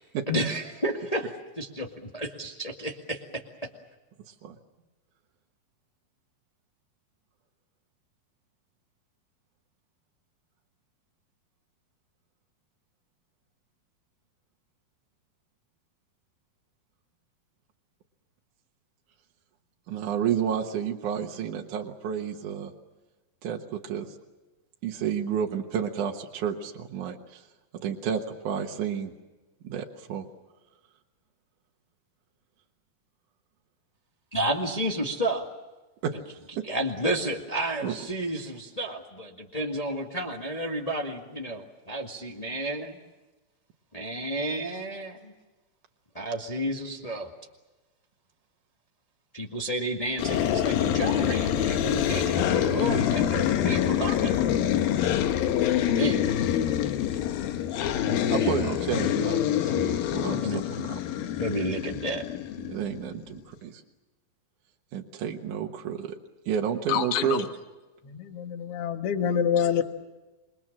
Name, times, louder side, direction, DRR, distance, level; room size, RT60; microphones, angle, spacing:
voice 1, 0.3-3.4 34.3-35.5 36.6-43.0 43.9-45.3 46.1-47.3 49.3-54.4 55.9-56.3 58.2-58.7 60.3-60.6 61.4-62.2, right 1 dB, 20° left, 1 dB, 0.9 m, -31 dB
voice 2, 19.9-22.7 23.4-24.2 24.8-27.4 27.7-29.1 29.6-30.2 36.0-36.1 36.6-36.7 37.8-38.0 58.3-61.0 62.6-63.8 64.9-66.2 66.5-67.5, right 8 dB, 65° right, 1 dB, 2.6 m, -31 dB
sound 1, 50.2-63.1, left 10 dB, 85° left, 3.0 m, -26 dB
voice 3, 66.9-67.4 68.0-69.8, left 8 dB, 50° left, 6 dB, 2.1 m, -26 dB
28.0 x 23.0 x 7.4 m, 1.1 s
omnidirectional pair, 4.1 m